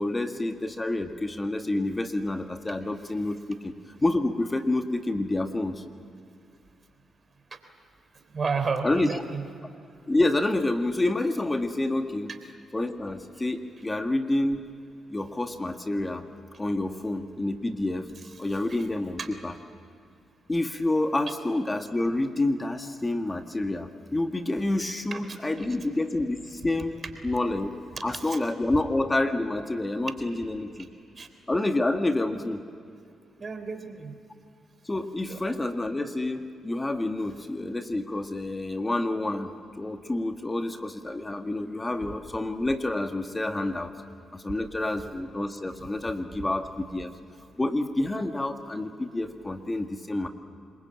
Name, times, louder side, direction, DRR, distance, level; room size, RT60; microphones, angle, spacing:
voice 1, 0.0-3.7 4.0-5.8 8.8-9.1 10.1-12.3 12.7-14.6 15.1-16.2 16.6-18.1 18.4-19.5 20.5-26.9 27.2-27.7 28.0-30.9 31.5-32.7 34.9-43.9 44.3-47.1 47.6-50.3, left 2 dB, 25° left, 6 dB, 1.8 m, -28 dB
voice 2, 8.3-9.4 12.3-12.4 13.8-13.9 18.2-18.3 18.7-18.9 19.2-19.3 25.1-25.8 27.9-28.4 28.7-28.8 31.2-31.3 33.4-34.1 35.3-35.7, right 4 dB, 45° right, 7 dB, 3.6 m, -33 dB
26.5 x 22.5 x 8.9 m, 2.4 s
supercardioid pair, 50°, 0 cm